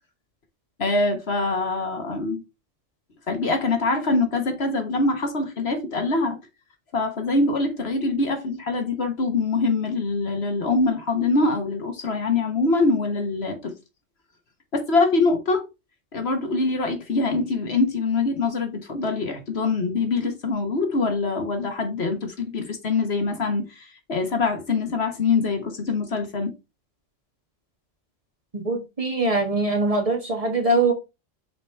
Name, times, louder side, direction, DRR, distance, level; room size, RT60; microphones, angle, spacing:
voice 1, 0.8-2.4 3.3-6.4 6.9-13.7 14.7-15.6 16.1-26.5, left 3 dB, 55° left, 1.5 m, -24 dB
voice 2, 28.5-30.9, right 2 dB, 30° right, 1.5 m, -22 dB
5.9 x 4.8 x 3.4 m
omnidirectional pair, 1.3 m